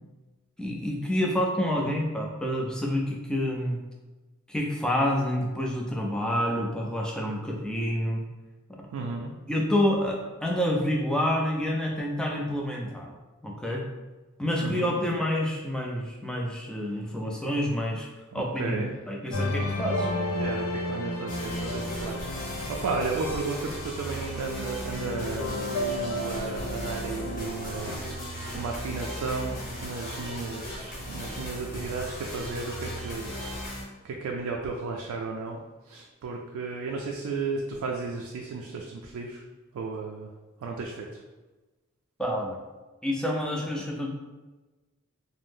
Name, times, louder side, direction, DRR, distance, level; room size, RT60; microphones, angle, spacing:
voice 1, 0.6-3.8 4.5-8.2 8.8-8.9 9.5-13.1 13.4-13.8 14.4-18.1 18.3-20.1 42.2-42.6 43.0-44.1, left 1 dB, 5° left, -1 dB, 0.3 m, -28 dB
voice 2, 8.9-9.3 14.6-15.0 18.3-18.9 20.4-39.5 39.7-40.3 40.6-41.2, right 4 dB, 90° right, 0 dB, 0.3 m, -34 dB
sound 1, 19.3-24.5 25.0-28.0, left 1 dB, 80° left, 0.4 m, -32 dB
sound 2, 21.3-33.8, equal, 40° left, 1.0 m, -37 dB
2.5 x 2.0 x 3.3 m, 1.2 s
head